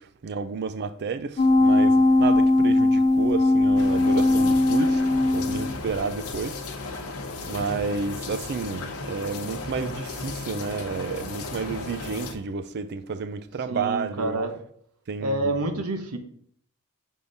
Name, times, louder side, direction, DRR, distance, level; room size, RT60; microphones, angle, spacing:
voice 1, 0.0-5.0 5.3-7.0 7.4-14.4 15.1-15.6, right 5 dB, 50° right, 0.4 m, -31 dB
sound 1, 1.4-5.9 6.3-6.4, left 2 dB, 35° left, 0.3 m, -19 dB
sound 2, 3.8-12.3, left 3 dB, 75° left, 0.8 m, -35 dB
voice 2, 13.7-14.6 15.2-16.2, right 2 dB, 85° right, 0.9 m, -28 dB
7.0 x 3.7 x 4.0 m
head